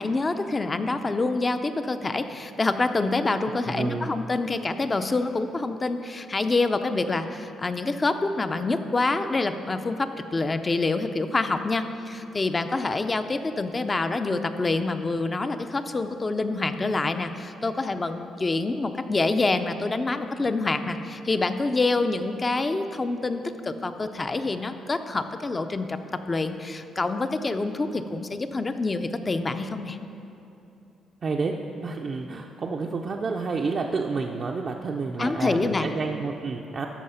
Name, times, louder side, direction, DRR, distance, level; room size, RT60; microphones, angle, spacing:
voice 1, 0.0-26.0 26.3-30.0 35.2-35.9, left 3 dB, 25° left, 8 dB, 0.5 m, -26 dB
voice 2, 3.6-4.1 31.2-36.9, right 4 dB, 45° right, 1 dB, 0.5 m, -29 dB
13.0 x 4.8 x 5.6 m, 2.8 s
cardioid pair, 90°, 0 cm